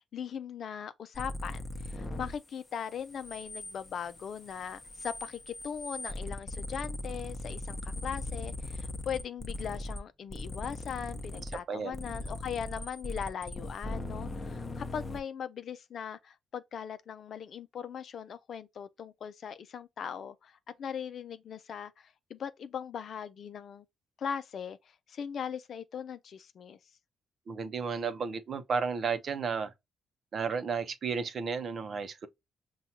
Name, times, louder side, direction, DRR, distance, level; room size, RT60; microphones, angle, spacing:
voice 1, 0.1-23.8 24.2-24.8 25.1-26.8, left 7 dB, 60° left, 0.5 m, -39 dB
sound 1, 1.1-2.4 2.7-10.0 10.3-11.6 11.9-15.2, left 1 dB, 25° left, 0.8 m, -39 dB
voice 2, 11.3-12.0 27.5-29.7 30.3-32.3, right 5 dB, 50° right, 0.7 m, -33 dB
5.7 x 2.3 x 2.8 m
cardioid pair, 90°, 0 cm